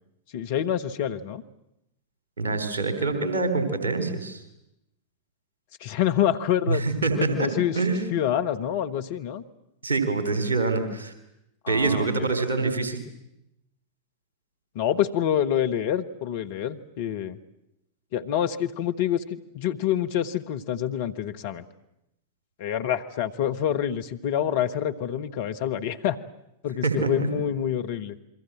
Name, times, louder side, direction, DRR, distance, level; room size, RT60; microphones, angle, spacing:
voice 1, 0.3-1.4 2.4-2.7 5.8-6.8 7.1-7.8 8.1-9.4 11.6-12.3 14.7-17.4 18.1-21.6 22.6-26.2 26.6-28.1, left 10 dB, 50° left, 8 dB, 1.4 m, -27 dB
voice 2, 2.4-4.4 6.7-7.5 7.7-8.0 9.8-11.1 11.7-13.0 26.8-27.3, right 3 dB, 65° right, 9 dB, 3.9 m, -25 dB
28.5 x 23.0 x 7.6 m, 0.86 s
figure-of-eight pair, 90°, 0 cm